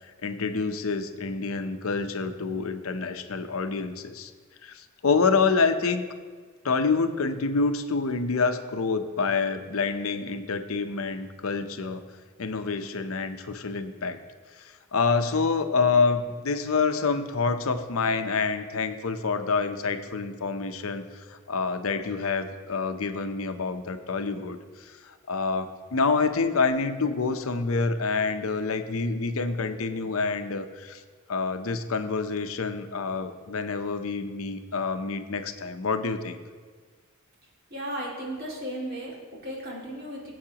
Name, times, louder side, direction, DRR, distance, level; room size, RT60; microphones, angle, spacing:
voice 1, 0.2-4.3 4.6-6.0 6.6-12.0 12.4-14.2 14.6-21.0 21.3-31.0 31.3-36.4, left 4 dB, 75° left, 8 dB, 0.7 m, -27 dB
voice 2, 37.7-40.3, right 1 dB, 45° right, -3 dB, 2.3 m, -35 dB
18.0 x 7.9 x 2.9 m, 1.5 s
head